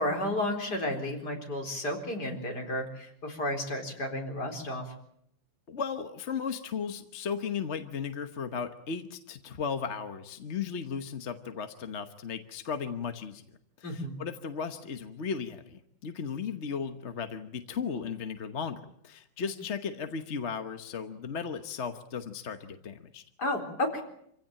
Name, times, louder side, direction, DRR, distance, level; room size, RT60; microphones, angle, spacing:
voice 1, 0.0-4.8 13.8-14.2 23.4-24.0, left 1 dB, 55° left, 3 dB, 4.8 m, -32 dB
voice 2, 5.7-13.4 13.8-23.2, left 6 dB, 40° left, 8 dB, 1.2 m, -36 dB
27.0 x 16.5 x 8.9 m, 0.73 s
omnidirectional pair, 2.1 m